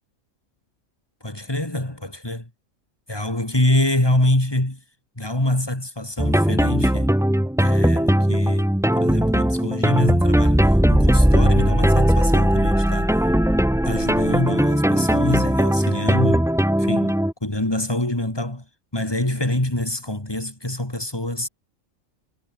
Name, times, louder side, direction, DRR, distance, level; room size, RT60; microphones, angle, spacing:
voice 1, 1.2-2.5 3.1-4.8 5.2-7.1 7.6-10.7 10.9-13.2 13.8-16.5 16.8-18.6 18.9-21.5, left 1 dB, 15° left, 3.5 m, -25 dB
sound 1, 6.2-17.3, equal, 5° right, 0.7 m, -18 dB
omnidirectional pair, 1.4 m